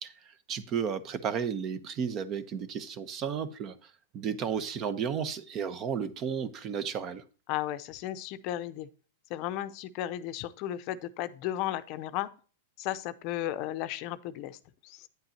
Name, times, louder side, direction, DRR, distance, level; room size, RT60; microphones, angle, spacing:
voice 1, 0.5-3.7 4.1-7.2, right 7 dB, 35° right, 0.9 m, -33 dB
voice 2, 7.5-8.9 9.3-12.3 12.8-14.6 14.8-15.0, left 13 dB, 45° left, 0.6 m, -34 dB
9.3 x 8.0 x 2.8 m
hypercardioid pair, 125°, 0 cm